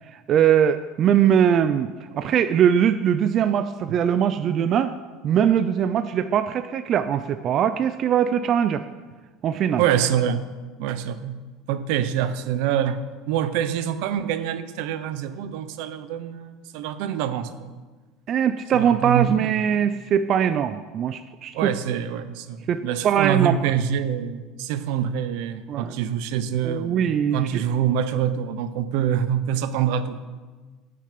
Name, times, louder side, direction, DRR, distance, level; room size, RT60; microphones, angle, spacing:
voice 1, 0.1-5.0 5.2-8.8 9.4-9.8 18.3-21.7 22.7-22.8 23.0-23.6 25.7-25.9 26.6-27.6, right 9 dB, 35° right, 11 dB, 0.4 m, -21 dB
voice 2, 9.8-10.5 10.8-17.7 18.7-19.5 21.5-27.1 27.3-30.2, right 9 dB, 70° right, 12 dB, 0.8 m, -26 dB
14.5 x 6.6 x 5.2 m, 1.3 s
cardioid pair, 160°, 0 cm